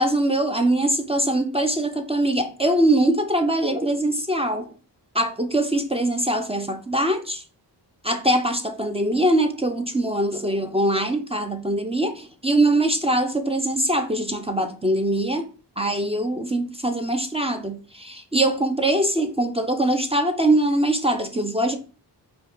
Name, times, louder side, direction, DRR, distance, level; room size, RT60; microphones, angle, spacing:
voice 1, 0.0-4.7 5.1-7.4 8.0-15.5 15.8-21.8, right 1 dB, 15° right, 0.4 m, -22 dB
5.1 x 2.2 x 3.7 m
wide cardioid pair, 90°, 43 cm